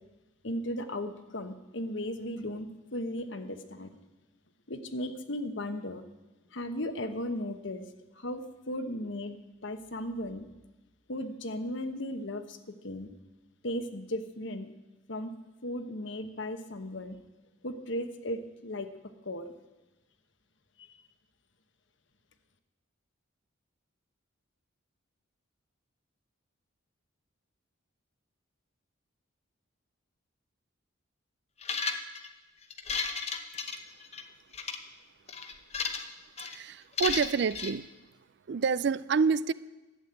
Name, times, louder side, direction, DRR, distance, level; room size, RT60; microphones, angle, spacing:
voice 1, 0.4-3.9 4.7-6.0 6.5-7.9 8.1-10.4 11.1-13.1 13.6-14.7 15.1-15.3 15.6-17.2 17.6-18.9 19.2-19.5 20.8-20.9, left 1 dB, 65° left, 9 dB, 1.1 m, -36 dB
sound 1, 31.6-32.3 32.7-34.2 34.5-34.8 35.3-36.1 36.4-36.6 37.0-37.7, left 5 dB, 30° left, 0.8 m, -34 dB
voice 2, 36.4-37.9 38.5-39.5, right 5 dB, 55° right, 18 dB, 0.4 m, -28 dB
12.0 x 8.4 x 8.9 m, 1.1 s
head